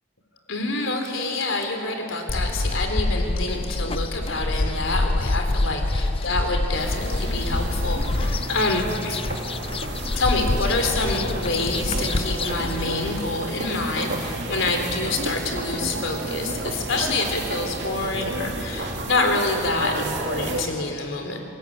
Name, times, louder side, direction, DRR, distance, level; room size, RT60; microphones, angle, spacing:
voice 1, 0.5-9.2 9.9-21.4, left 2 dB, 90° left, 4 dB, 3.8 m, -27 dB
sound 1, 2.3-12.8, left 2 dB, 30° left, 0.5 m, -26 dB
sound 2, 6.8-20.6, right 1 dB, 60° right, 3.1 m, -31 dB
28.5 x 20.0 x 8.8 m, 2.9 s
head